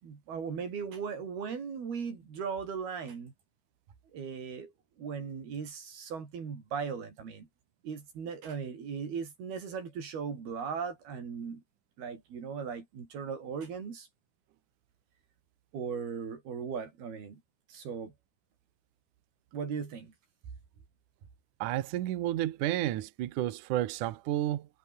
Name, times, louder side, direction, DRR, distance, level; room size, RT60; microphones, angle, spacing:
voice 1, 0.0-3.3 4.1-4.7 5.0-7.5 7.8-11.6 12.0-14.1 15.7-17.4 17.7-18.1 19.5-20.1, right 6 dB, 55° right, 6.5 m, -38 dB
voice 2, 21.6-24.7, right 13 dB, 80° right, 1.8 m, -31 dB
omnidirectional pair, 5.4 m